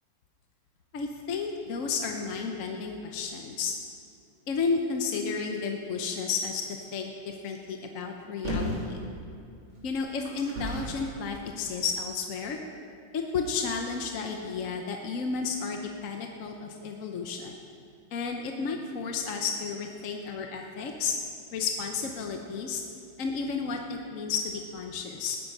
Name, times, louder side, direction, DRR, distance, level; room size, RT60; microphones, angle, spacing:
voice 1, 0.9-3.7 4.5-9.0 9.8-12.6 13.1-17.5 18.1-21.1 21.5-22.8 23.2-25.4, left 5 dB, 55° left, 3 dB, 1.0 m, -32 dB
sound 1, 8.4-8.9 9.7-11.1 11.8-11.9, equal, 80° right, 3.7 m, -33 dB
19.0 x 9.4 x 5.4 m, 2.4 s
omnidirectional pair, 2.2 m